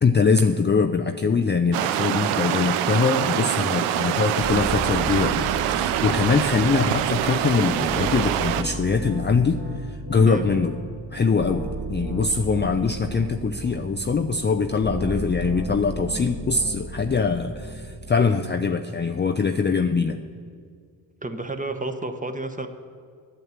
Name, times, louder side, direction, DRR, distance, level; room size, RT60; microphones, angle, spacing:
voice 1, 0.0-10.7 11.1-20.2, left 5 dB, 25° left, 6 dB, 0.5 m, -23 dB
sound 1, 1.7-8.6, right 11 dB, 80° right, 0.6 m, -25 dB
sound 2, 4.4-18.2, right 2 dB, 40° right, 2.4 m, -34 dB
voice 2, 21.2-22.7, right 2 dB, 15° right, 6 dB, 1.2 m, -30 dB
9.4 x 8.0 x 7.3 m, 2.2 s
hypercardioid pair, 45°, 49 cm